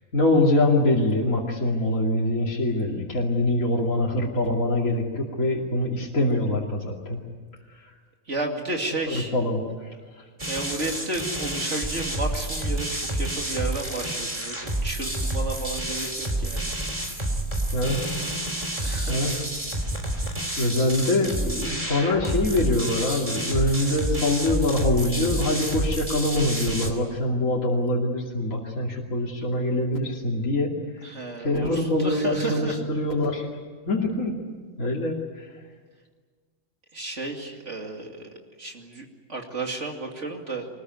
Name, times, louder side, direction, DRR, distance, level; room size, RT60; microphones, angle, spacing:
voice 1, 0.1-7.2 9.1-9.9 17.7-18.0 18.5-18.6 19.1-19.3 20.6-30.7 31.4-33.5 33.9-34.3 34.8-35.5, left 2 dB, 60° left, -3 dB, 3.1 m, -24 dB
voice 2, 8.3-9.3 10.5-16.7 18.8-19.4 20.5-20.7 31.0-32.9 36.9-38.3 38.6-40.7, right 2 dB, 50° right, 2 dB, 2.9 m, -33 dB
sound 1, 10.4-26.9, right 1 dB, 20° right, 3.0 m, -29 dB
24.5 x 20.0 x 9.5 m, 1.5 s
omnidirectional pair, 1.6 m